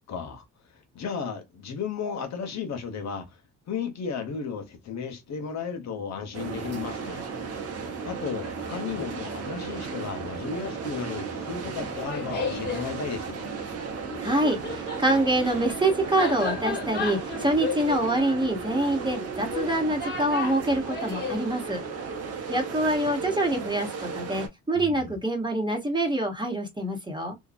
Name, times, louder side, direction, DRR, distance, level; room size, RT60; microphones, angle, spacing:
voice 1, 0.1-0.4 0.7-3.4 3.7-7.2 8.0-13.4 24.7-25.2, left 5 dB, 60° left, 0.8 m, -34 dB
sound 1, 6.3-24.5, right 5 dB, 55° right, 0.9 m, -35 dB
Laughter, 11.8-12.9 14.1-21.4, left 5 dB, 35° left, 1.3 m, -34 dB
voice 2, 14.2-21.8 22.5-27.4, right 1 dB, 15° right, 1.0 m, -26 dB
2.7 x 2.2 x 2.4 m
cardioid pair, 90°, 30 cm